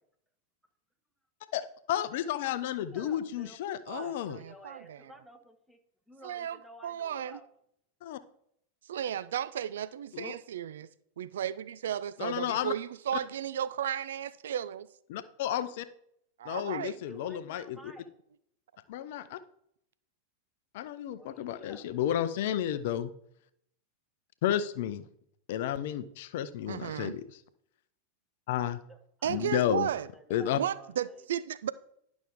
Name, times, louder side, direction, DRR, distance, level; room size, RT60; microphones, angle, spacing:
voice 1, 1.5-4.4 8.0-8.2 10.1-10.3 12.2-12.7 15.1-15.9 16.4-17.9 18.9-19.4 20.7-23.1 24.4-25.0 25.5-27.2 28.5-28.8 29.3-29.9 30.3-30.6, left 11 dB, 55° left, 0.5 m, -32 dB
voice 2, 2.9-3.6 3.9-5.8 6.1-7.5 17.0-18.1 21.2-21.8 28.9-31.2, equal, ahead, 1.4 m, -52 dB
voice 3, 3.9-5.1 6.2-7.4 8.9-10.9 11.2-14.9 16.4-17.0 26.7-27.1 29.2-30.1 30.5-31.7, right 10 dB, 60° right, 0.3 m, -34 dB
11.5 x 6.1 x 3.6 m
figure-of-eight pair, 90°, 0 cm